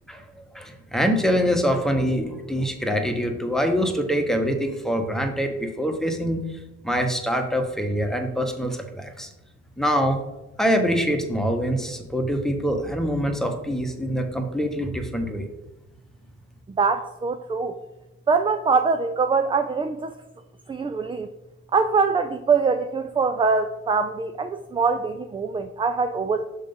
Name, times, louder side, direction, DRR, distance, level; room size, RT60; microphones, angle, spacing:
voice 1, 0.5-9.3 9.8-10.2 10.6-15.5, equal, ahead, 4 dB, 1.0 m, -24 dB
voice 2, 16.7-17.7 18.3-20.1 20.7-21.3 21.7-26.4, right 4 dB, 15° right, 7 dB, 0.4 m, -23 dB
6.6 x 3.6 x 5.4 m, 1.0 s
cardioid pair, 90°, 30 cm